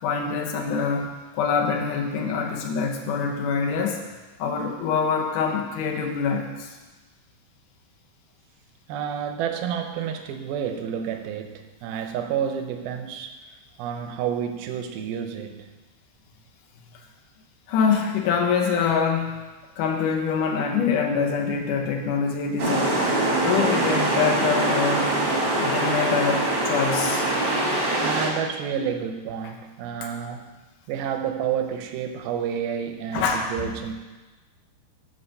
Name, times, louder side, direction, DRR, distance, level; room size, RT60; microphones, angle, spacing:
voice 1, 0.0-4.0 4.4-6.7 16.9-17.0 17.7-19.4 19.8-22.9 23.4-25.1 25.6-27.3 33.1-33.7, left 6 dB, 70° left, 2 dB, 2.2 m, -25 dB
voice 2, 8.9-13.3 13.8-15.7 28.0-30.6 30.9-33.9, right 8 dB, 80° right, 6 dB, 2.5 m, -29 dB
sound 1, 22.6-28.3, right 2 dB, 45° right, 2.0 m, -23 dB
9.8 x 5.0 x 6.6 m, 1.2 s
omnidirectional pair, 4.5 m